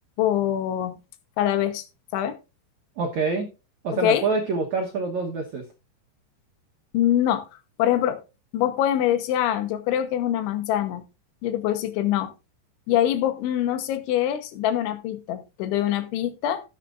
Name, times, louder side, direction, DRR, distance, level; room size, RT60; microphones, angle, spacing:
voice 1, 0.2-1.0 1.4-1.8 2.1-2.4 3.9-4.3 6.9-7.5 7.8-8.2 8.5-11.0 11.4-12.3 12.9-16.6, left 11 dB, 85° left, 3.5 m, -24 dB
voice 2, 3.0-3.5 3.8-5.6, right 4 dB, 90° right, 1.6 m, -26 dB
18.5 x 7.4 x 2.5 m
omnidirectional pair, 5.2 m